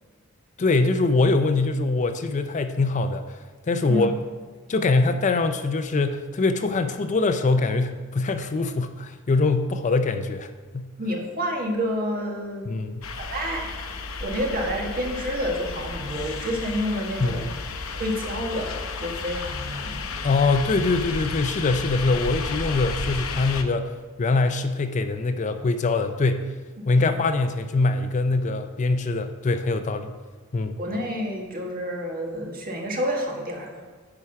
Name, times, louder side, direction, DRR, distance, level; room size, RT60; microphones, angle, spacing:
voice 1, 0.6-3.4 3.7-4.1 4.7-10.9 12.6-13.0 17.2-17.4 20.2-23.9 24.2-26.5 26.9-30.1 30.5-30.7, left 3 dB, 35° left, 9 dB, 0.4 m, -23 dB
voice 2, 11.0-12.7 13.2-13.7 14.2-17.5 17.9-20.0 26.8-27.1 30.8-33.9, equal, 45° right, 0 dB, 1.6 m, -29 dB
sound 1, 13.0-23.6, left 4 dB, 75° left, 0.7 m, -33 dB
9.8 x 4.8 x 5.7 m, 1.4 s
head